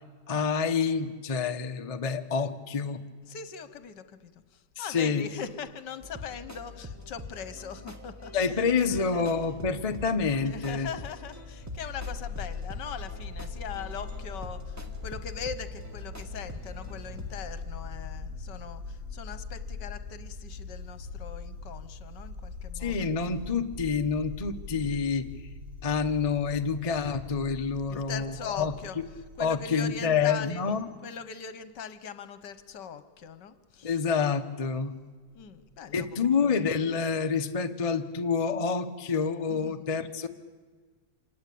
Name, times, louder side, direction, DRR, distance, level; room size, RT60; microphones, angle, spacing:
voice 1, 0.3-3.0 4.8-5.3 8.3-10.9 22.7-25.3 25.8-28.7 29.4-30.9 33.8-34.9 35.9-40.3, left 5 dB, 30° left, 6 dB, 0.6 m, -28 dB
voice 2, 3.3-8.6 8.9-9.3 10.4-23.1 27.9-29.0 29.4-30.6 31.0-34.0 35.3-36.4 39.5-39.9, left 7 dB, 65° left, 12 dB, 1.6 m, -41 dB
sound 1, 6.0-17.4, left 2 dB, 10° right, 1.3 m, -44 dB
sound 2, 9.7-28.1, left 1 dB, 60° right, 4.2 m, -51 dB
sound 3, 11.6-30.8, left 4 dB, 45° right, 3.9 m, -42 dB
26.5 x 19.0 x 8.5 m, 1.5 s
omnidirectional pair, 2.1 m